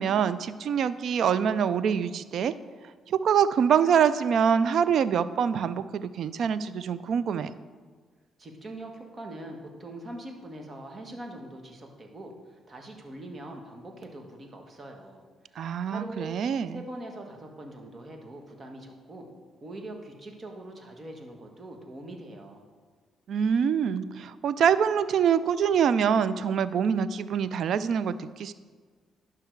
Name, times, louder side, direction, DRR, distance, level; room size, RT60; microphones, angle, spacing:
voice 1, 0.0-2.5 3.1-7.5 15.6-16.8 23.3-28.5, right 7 dB, 65° right, 15 dB, 0.4 m, -25 dB
voice 2, 8.4-15.2 15.5-16.4 16.7-19.3 19.6-22.7, right 1 dB, 35° right, 2 dB, 1.5 m, -42 dB
11.5 x 5.7 x 4.6 m, 1.5 s
cardioid pair, 90°, 0 cm